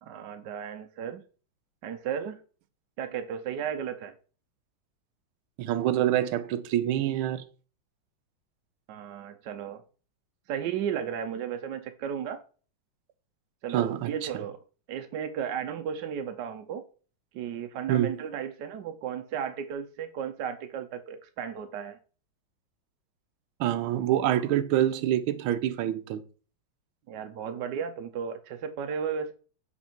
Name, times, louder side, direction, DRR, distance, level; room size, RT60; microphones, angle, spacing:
voice 1, 0.0-1.2 1.8-2.4 3.0-4.1 8.9-9.8 10.5-12.4 13.6-14.6 14.9-16.9 17.3-22.0 27.1-29.3, right 8 dB, 70° right, 1.1 m, -34 dB
voice 2, 5.6-7.5 13.7-14.3 17.9-18.1 23.6-26.2, right 12 dB, 85° right, 1.5 m, -26 dB
7.1 x 4.3 x 4.4 m
omnidirectional pair, 2.3 m